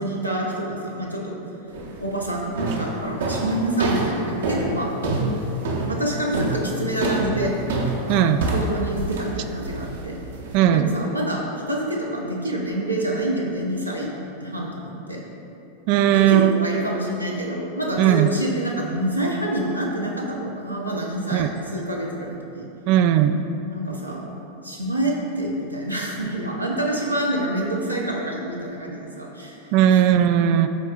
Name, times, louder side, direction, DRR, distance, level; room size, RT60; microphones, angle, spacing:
voice 1, 0.0-1.4 2.0-4.9 5.8-7.5 8.5-10.2 10.7-14.1 14.4-15.2 16.0-22.7 23.7-24.2 24.6-29.6 29.9-30.2, right 1 dB, 90° right, -3 dB, 1.0 m, -27 dB
sound 1, 1.7-2.1 2.6-10.6, right 2 dB, 65° right, 1.0 m, -26 dB
voice 2, 8.1-8.5 10.5-10.9 15.9-16.7 18.0-18.3 21.3-21.5 22.9-23.4 29.7-30.7, right 10 dB, 45° right, 9 dB, 0.3 m, -17 dB
12.5 x 4.4 x 2.4 m, 2.7 s
figure-of-eight pair, 90°, 0 cm